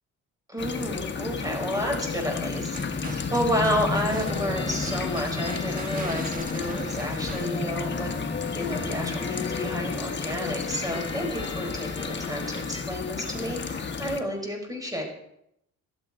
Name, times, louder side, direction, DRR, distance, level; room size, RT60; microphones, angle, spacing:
voice 1, 0.5-8.1 8.5-15.0, equal, 10° right, 2 dB, 5.5 m, -30 dB
sound 1, 0.6-14.2, left 5 dB, 35° left, 1.5 m, -31 dB
sound 2, 2.7-8.0, right 3 dB, 30° right, 1.4 m, -41 dB
sound 3, 4.3-12.8, left 3 dB, 15° left, 1.3 m, -40 dB
16.0 x 12.5 x 4.5 m, 0.78 s
cardioid pair, 90°, 30 cm